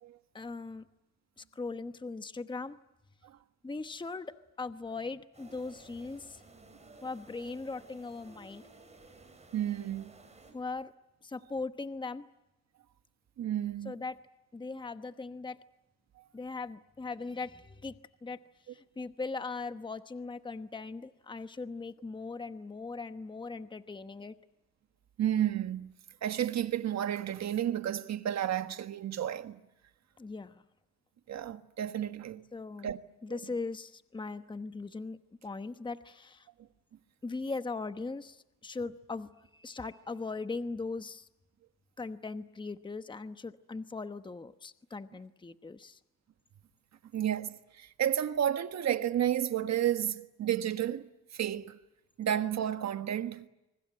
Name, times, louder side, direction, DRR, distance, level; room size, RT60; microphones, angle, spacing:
voice 1, 0.3-0.8 1.4-2.8 3.6-6.4 7.0-8.6 10.5-10.9 11.2-12.3 13.8-14.2 14.5-15.6 16.3-18.4 18.7-24.4 30.2-30.6 32.5-32.9 33.2-36.5 37.2-41.3 42.0-46.0, left 3 dB, 15° left, 1.0 m, -39 dB
sound 1, 5.3-10.5, right 2 dB, 20° right, 7.2 m, -56 dB
voice 2, 9.5-10.1 13.4-13.9 16.2-16.3 25.2-25.9 26.2-29.6 31.3-32.4 32.8-33.0 33.3-33.4 47.1-51.8 52.2-53.5, right 10 dB, 60° right, 1.5 m, -32 dB
25.0 x 24.0 x 9.3 m
cardioid pair, 90°, 30 cm